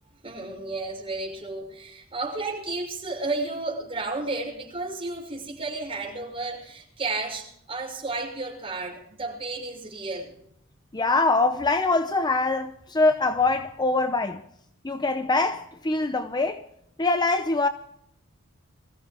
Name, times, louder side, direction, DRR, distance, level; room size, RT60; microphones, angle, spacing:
voice 1, 0.2-10.3, right 3 dB, 25° right, 6.0 m, -32 dB
voice 2, 10.9-14.4 14.8-16.6 17.0-17.7, left 3 dB, 20° left, 0.7 m, -23 dB
24.0 x 15.0 x 3.6 m
head